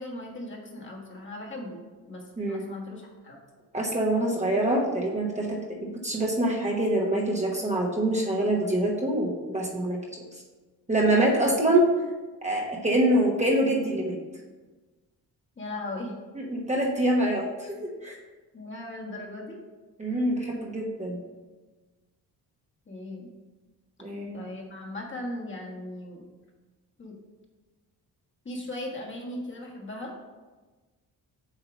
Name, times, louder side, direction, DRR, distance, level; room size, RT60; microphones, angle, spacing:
voice 1, 0.0-3.4 15.6-16.1 18.5-19.6 22.9-23.3 24.3-26.2 27.0-27.1 28.4-30.1, left 1 dB, 30° left, -1 dB, 1.4 m, -38 dB
voice 2, 3.7-10.0 10.3-10.4 10.9-11.8 12.4-14.2 16.3-17.7 18.0-18.2 20.0-21.2 24.0-24.4, right 1 dB, 20° right, -2 dB, 1.0 m, -25 dB
8.3 x 2.8 x 5.9 m, 1.3 s
cardioid pair, 100°, 38 cm